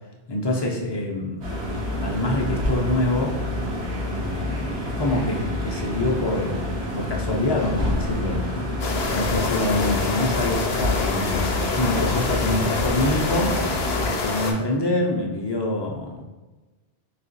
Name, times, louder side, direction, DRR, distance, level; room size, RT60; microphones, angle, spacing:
voice 1, 0.3-1.4 2.0-3.4 4.1-6.7 6.9-13.6 14.0-16.2, left 1 dB, 40° left, -1 dB, 0.4 m, -26 dB
sound 1, 1.4-14.1, left 1 dB, 85° right, 1.2 m, -28 dB
sound 2, 8.8-14.5, left 4 dB, 75° left, 0.9 m, -26 dB
4.0 x 2.4 x 3.9 m, 1.2 s
omnidirectional pair, 1.1 m